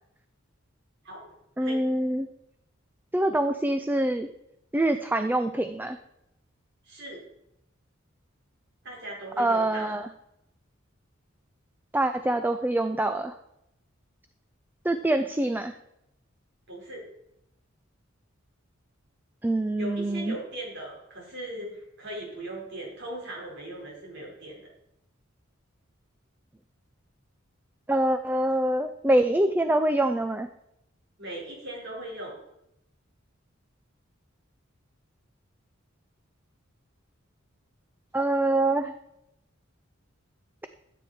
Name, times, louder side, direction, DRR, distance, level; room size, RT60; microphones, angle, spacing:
voice 1, 1.6-2.3 3.1-4.3 4.7-6.0 9.4-10.1 11.9-13.3 14.8-15.7 19.4-20.4 27.9-30.5 38.1-38.9, right 1 dB, 10° right, 8 dB, 0.4 m, -25 dB
voice 2, 6.8-7.2 8.8-9.9 16.7-17.0 19.8-24.7 31.2-32.4, right 1 dB, 60° right, -3 dB, 4.7 m, -39 dB
14.5 x 8.2 x 4.3 m, 0.82 s
head